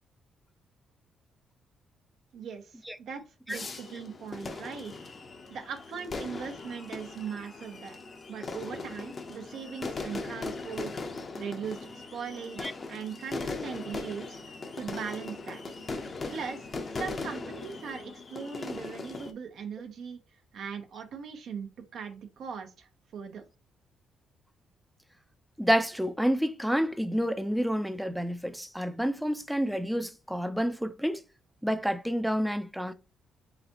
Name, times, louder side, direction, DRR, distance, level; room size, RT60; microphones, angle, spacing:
voice 1, 2.3-2.7 3.0-3.2 3.5-4.9 5.5-8.0 8.3-14.4 14.7-15.6 16.3-16.6 17.0-20.2 20.5-23.4, right 6 dB, 70° right, 0.7 m, -39 dB
sound 1, 3.5-19.3, left 3 dB, 40° left, 0.6 m, -39 dB
voice 2, 25.6-31.2 31.6-32.9, equal, ahead, 0.4 m, -29 dB
4.0 x 3.2 x 2.9 m
cardioid pair, 90°, 0 cm